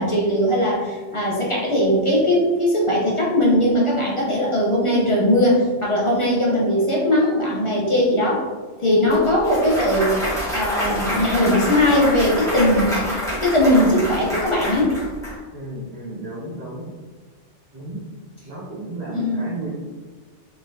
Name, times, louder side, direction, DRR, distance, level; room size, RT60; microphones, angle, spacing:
voice 1, 0.0-8.4 8.8-10.2 10.5-13.0 13.4-15.0 19.1-19.4, left 1 dB, 30° left, -5 dB, 0.7 m, -19 dB
Clapping / Cheering / Applause, 9.1-15.3, equal, 5° left, 1.3 m, -27 dB
voice 2, 15.5-16.9 17.7-18.0 18.4-19.7, right 2 dB, 55° right, -6 dB, 1.8 m, -33 dB
4.1 x 3.4 x 2.7 m, 1.4 s
omnidirectional pair, 1.3 m